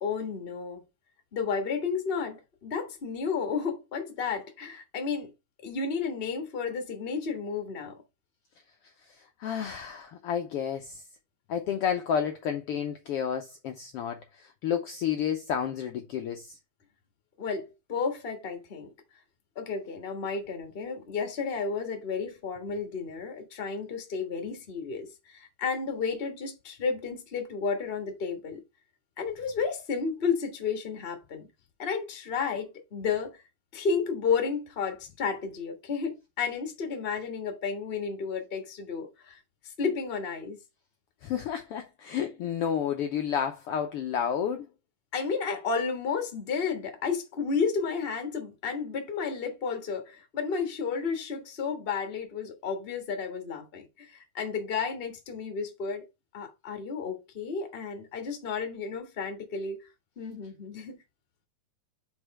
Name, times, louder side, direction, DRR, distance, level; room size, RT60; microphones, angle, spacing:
voice 1, 0.0-0.8 1.3-5.3 5.6-8.0 17.4-18.9 19.5-28.6 29.2-31.5 31.8-33.4 33.7-40.6 45.1-56.0 56.3-59.9 60.2-61.0, left 5 dB, 35° left, 0.9 m, -32 dB
voice 2, 9.0-11.0 11.5-16.6 41.2-44.7, left 8 dB, 85° left, 1.3 m, -31 dB
5.4 x 4.4 x 4.7 m
omnidirectional pair, 3.5 m